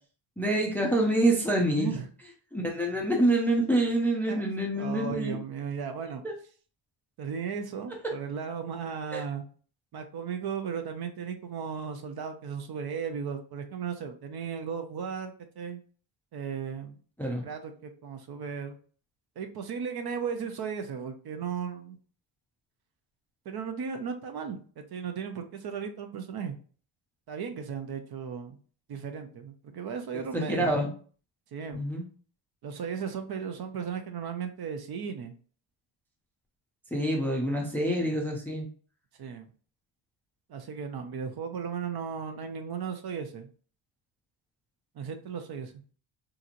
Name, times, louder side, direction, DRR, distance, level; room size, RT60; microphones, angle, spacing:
voice 1, 0.4-1.9 2.5-5.4 6.2-6.3 9.1-9.2 17.2-17.4 30.3-30.9 31.7-32.0 36.9-38.7, right 1 dB, 5° left, 0 dB, 0.4 m, -26 dB
voice 2, 1.8-2.1 4.3-4.4 4.8-6.2 7.2-9.4 9.9-15.8 16.3-17.0 17.4-18.8 19.4-22.0 23.5-26.6 27.3-28.6 28.9-30.7 31.5-31.8 32.6-35.3 39.2-39.5 40.5-43.5 45.0-45.7, right 6 dB, 50° right, 7 dB, 0.5 m, -36 dB
3.7 x 2.9 x 2.5 m, 0.42 s
wide cardioid pair, 165°, 49 cm